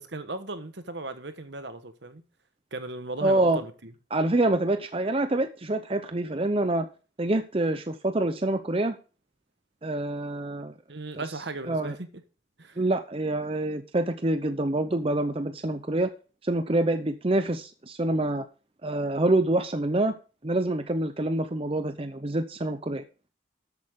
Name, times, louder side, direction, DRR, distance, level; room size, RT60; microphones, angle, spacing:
voice 1, 0.0-2.2 2.7-3.9 10.9-12.1 12.6-12.8, right 2 dB, 60° right, 1.3 m, -36 dB
voice 2, 3.2-3.6 4.1-6.9 7.2-9.0 9.8-10.7 11.7-12.0 12.8-16.1 16.4-18.5 18.8-20.1 20.4-23.0, right 2 dB, 30° right, 0.7 m, -26 dB
13.0 x 8.6 x 3.7 m
head